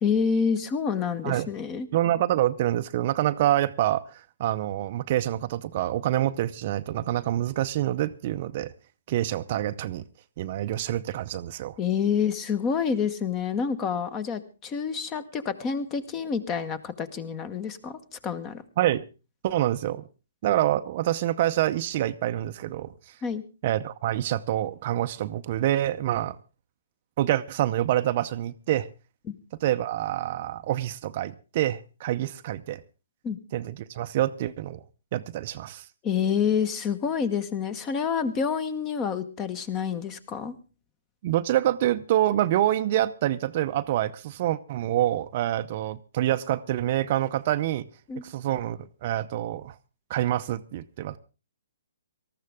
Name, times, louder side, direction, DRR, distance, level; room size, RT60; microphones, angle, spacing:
voice 1, 0.0-1.9 11.8-18.6 23.2-23.4 29.3-29.4 33.2-33.4 36.0-40.5 48.1-48.2, left 6 dB, 20° left, 1.2 m, -28 dB
voice 2, 1.9-8.7 9.1-10.0 10.4-11.7 18.8-19.1 19.4-20.0 20.4-22.9 23.6-26.4 27.2-28.9 29.6-32.8 33.5-34.8 35.1-35.8 41.2-47.9 48.2-49.7 50.1-51.2, right 13 dB, 40° right, 0.7 m, -26 dB
19.0 x 14.0 x 3.6 m
hypercardioid pair, 150°, 0 cm